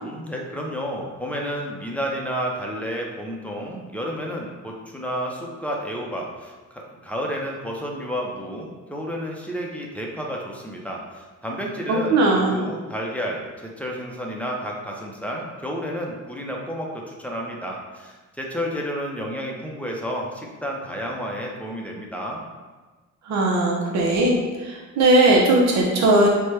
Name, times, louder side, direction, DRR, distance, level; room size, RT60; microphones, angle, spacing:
voice 1, 0.0-22.4, equal, 5° left, -2 dB, 0.6 m, -31 dB
voice 2, 12.1-12.6 23.3-26.3, right 2 dB, 65° right, -2 dB, 0.7 m, -18 dB
4.4 x 2.2 x 3.2 m, 1.3 s
cardioid pair, 90°, 30 cm